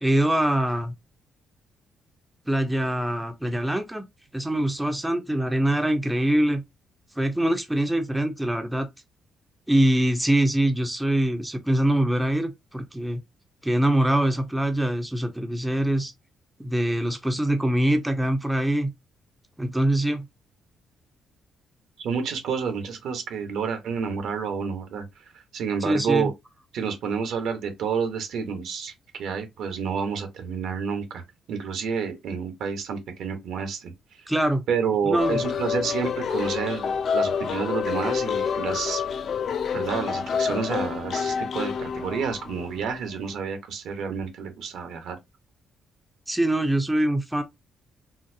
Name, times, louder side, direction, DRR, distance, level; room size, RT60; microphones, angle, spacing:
voice 1, 0.0-0.9 2.5-4.0 4.3-6.6 7.2-8.9 9.7-13.2 13.6-16.1 16.6-18.9 19.6-20.2 25.8-26.3 34.3-34.6 35.0-35.4 46.3-47.4, right 1 dB, 5° right, 0.6 m, -23 dB
voice 2, 22.0-25.2 25.5-26.3 26.7-31.2 31.5-34.2 34.7-39.0 39.7-45.2, right 6 dB, 75° right, 1.0 m, -29 dB
sound 1, 35.2-43.0, left 6 dB, 55° left, 0.3 m, -28 dB
3.9 x 2.0 x 2.6 m
cardioid pair, 90°, 0 cm